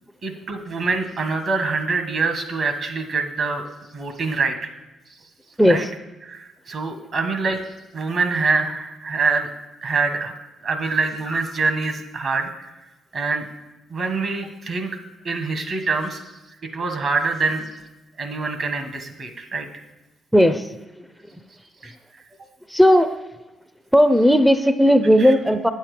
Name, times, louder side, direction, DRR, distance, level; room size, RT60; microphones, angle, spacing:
voice 1, 0.2-3.6 3.9-4.7 5.7-5.8 6.2-7.6 7.9-9.5 9.8-10.3 10.6-12.5 13.1-13.5 13.9-14.9 15.2-16.3 16.7-17.7 18.2-19.7 21.8-21.9 25.2-25.3, right 4 dB, 55° right, 6 dB, 1.5 m, -25 dB
voice 2, 20.3-20.7 21.0-21.1 22.7-23.1 23.9-25.7, equal, ahead, 9 dB, 0.5 m, -15 dB
8.9 x 7.3 x 5.0 m, 1.1 s
cardioid pair, 90°, 0 cm